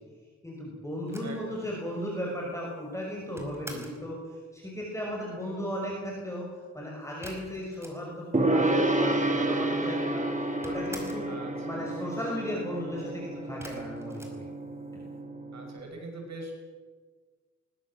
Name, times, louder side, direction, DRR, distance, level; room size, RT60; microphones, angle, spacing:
voice 1, 0.4-6.5 6.7-10.3 10.6-11.3 11.6-14.4, equal, 10° left, -3 dB, 6.2 m, -36 dB
sound 1, 1.1-4.1 7.2-8.4 8.7-8.8 8.9-9.7 10.0-11.4 13.6-15.1, right 1 dB, 10° right, 5.0 m, -47 dB
voice 2, 1.2-1.8 5.3-5.6 11.3-11.9 15.5-16.5, right 2 dB, 65° right, 1 dB, 6.2 m, -43 dB
Gong, 8.3-15.8, right 2 dB, 25° right, 2.3 m, -30 dB
22.0 x 22.0 x 7.7 m, 1.5 s
wide cardioid pair, 145°, 29 cm